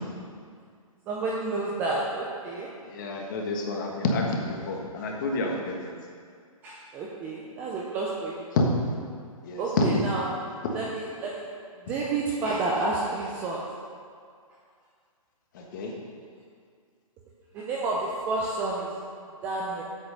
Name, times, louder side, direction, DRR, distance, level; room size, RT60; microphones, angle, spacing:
voice 1, 1.1-2.7 6.6-8.5 9.6-10.2 10.7-11.5 11.9-13.6 17.5-18.9 19.4-19.8, right 3 dB, 10° right, -4 dB, 0.4 m, -30 dB
voice 2, 2.8-5.8 8.5-8.6 9.4-9.9 15.5-15.9, left 3 dB, 35° left, 0 dB, 1.4 m, -28 dB
8.1 x 6.2 x 6.3 m, 2.1 s
hypercardioid pair, 160°, 19 cm